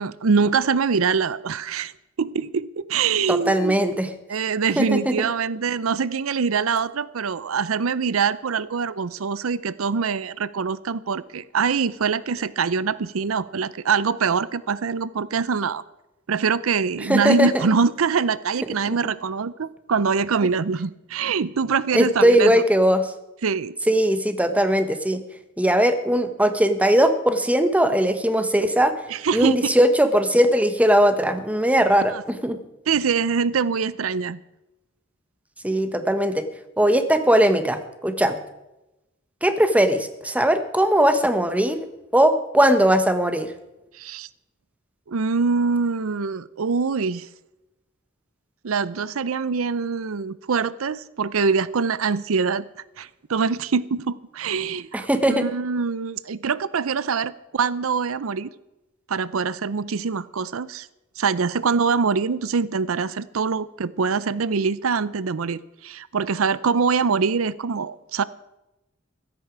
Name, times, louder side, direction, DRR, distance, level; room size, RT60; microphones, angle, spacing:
voice 1, 0.0-1.9 2.2-3.8 4.3-15.8 16.3-22.5 23.4-23.7 29.1-29.6 32.1-32.2 32.9-34.4 44.0-44.3 45.1-47.3 48.6-52.6 53.0-58.5 59.1-60.9 61.2-68.2, right 5 dB, 85° right, 18 dB, 0.6 m, -24 dB
voice 2, 3.3-4.1 4.8-5.3 17.0-17.6 21.9-23.1 23.9-25.2 25.6-28.9 29.3-32.6 35.6-36.4 36.8-38.4 39.4-41.9 42.1-43.5 54.9-55.4, equal, 5° right, 9 dB, 1.3 m, -19 dB
15.5 x 14.0 x 4.7 m, 0.95 s
head